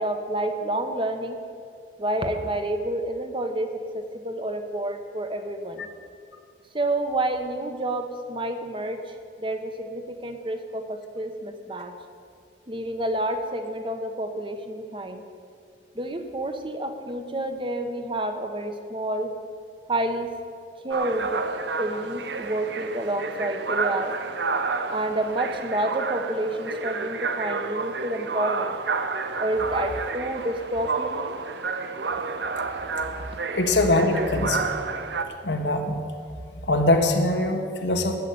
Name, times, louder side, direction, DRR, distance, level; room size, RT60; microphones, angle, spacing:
voice 1, 0.0-1.4 2.0-5.9 6.7-11.9 12.7-15.2 15.9-19.3 19.9-20.3 20.8-21.4 21.8-24.1 24.9-28.8 29.4-31.3, right 1 dB, 30° right, 7 dB, 1.0 m, -29 dB
sound 1, 20.9-35.2, right 4 dB, 75° right, 0.8 m, -30 dB
voice 2, 33.5-34.8 35.4-36.0 36.6-38.2, left 2 dB, 85° left, 4 dB, 1.6 m, -22 dB
12.5 x 8.2 x 8.6 m, 2.3 s
head